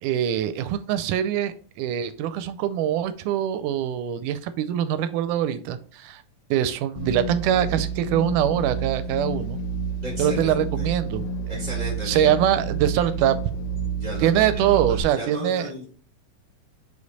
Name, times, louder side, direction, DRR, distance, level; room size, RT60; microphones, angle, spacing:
voice 1, 0.0-6.2 6.5-9.6 10.2-11.6 12.0-13.4 14.2-15.7, right 10 dB, 85° right, 12 dB, 2.0 m, -23 dB
sound 1, 7.0-15.0, right 4 dB, 85° left, 2.3 m, -29 dB
voice 2, 10.0-10.9 11.5-12.3 14.0-14.8 15.1-15.8, equal, 20° left, -1 dB, 1.3 m, -35 dB
5.1 x 5.1 x 4.0 m, 0.42 s
omnidirectional pair, 3.6 m